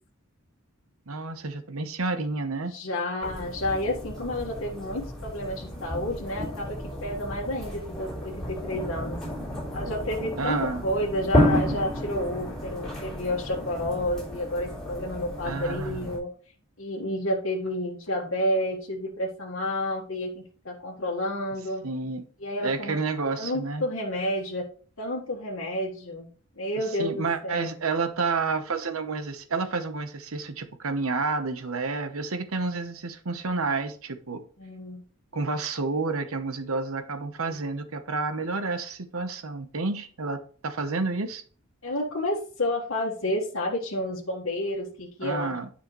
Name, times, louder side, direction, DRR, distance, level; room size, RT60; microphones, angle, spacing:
voice 1, 1.1-2.7 10.4-10.8 15.4-16.1 21.8-22.2 22.6-23.9 26.8-34.4 35.3-41.4 45.2-45.7, right 3 dB, 75° right, 9 dB, 0.9 m, -30 dB
voice 2, 2.7-9.2 9.7-16.3 16.8-21.9 22.4-23.0 23.4-24.7 25.0-26.3 26.6-27.7 34.6-35.0 41.8-45.7, left 1 dB, 65° left, -4 dB, 1.5 m, -30 dB
sound 1, 3.2-16.2, equal, ahead, 3.4 m, -31 dB
10.0 x 5.6 x 3.1 m, 0.42 s
head